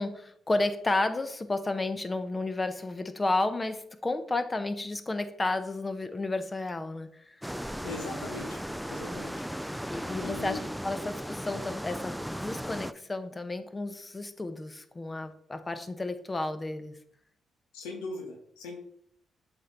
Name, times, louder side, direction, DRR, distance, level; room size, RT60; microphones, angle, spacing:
voice 1, 0.0-7.4 9.1-9.3 9.9-17.0, left 2 dB, 30° left, 10 dB, 0.8 m, -32 dB
sound 1, 7.4-12.9, equal, ahead, 0.3 m, -36 dB
voice 2, 7.8-8.6 8.9-9.4 10.2-10.7 17.7-18.8, left 3 dB, 85° left, 2 dB, 1.0 m, -40 dB
7.7 x 4.4 x 3.9 m, 0.68 s
hypercardioid pair, 50°, 0 cm